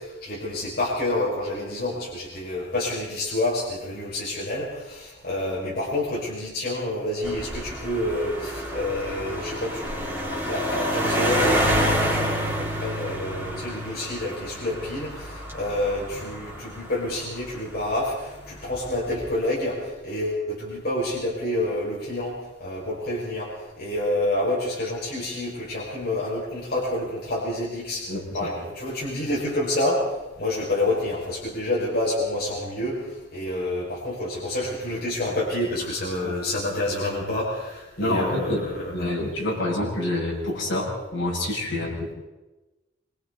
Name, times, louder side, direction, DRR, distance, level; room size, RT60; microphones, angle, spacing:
voice 1, 0.0-22.3 22.6-23.5 23.8-28.0 28.3-30.1 30.4-39.1 41.7-41.9, left 1 dB, 50° left, -7 dB, 6.1 m, -28 dB
sound 1, 7.2-18.0 18.7-19.2, equal, 10° right, 5.4 m, -28 dB
voice 2, 28.1-28.5 36.2-36.3 38.0-42.1, left 1 dB, 65° left, -3 dB, 7.2 m, -27 dB
26.5 x 25.5 x 4.2 m, 1.1 s
head